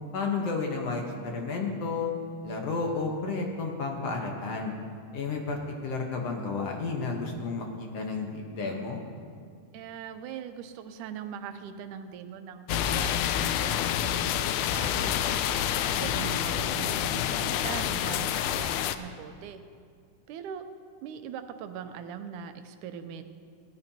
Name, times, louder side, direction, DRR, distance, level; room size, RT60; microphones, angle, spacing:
voice 1, 0.1-2.1 2.4-4.7 5.1-9.0, left 4 dB, 60° left, 1 dB, 1.9 m, -32 dB
voice 2, 9.7-15.3 15.8-19.6 20.3-20.7 21.0-23.2, right 8 dB, 80° right, 9 dB, 2.0 m, -41 dB
sound 1, 12.7-19.0, left 10 dB, 80° left, 1.8 m, -28 dB
18.0 x 15.5 x 2.9 m, 2.2 s
omnidirectional pair, 3.8 m